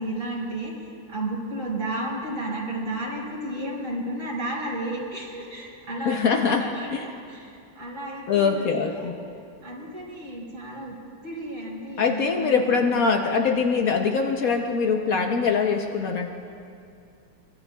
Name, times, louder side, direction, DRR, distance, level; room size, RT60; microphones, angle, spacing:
voice 1, 0.0-9.1 9.6-10.9 11.2-13.0, right 1 dB, 50° right, -5 dB, 4.1 m, -33 dB
voice 2, 6.0-7.1 8.3-9.2 12.0-16.3, left 5 dB, 60° left, 4 dB, 1.0 m, -23 dB
23.5 x 20.5 x 2.3 m, 2.5 s
omnidirectional pair, 2.1 m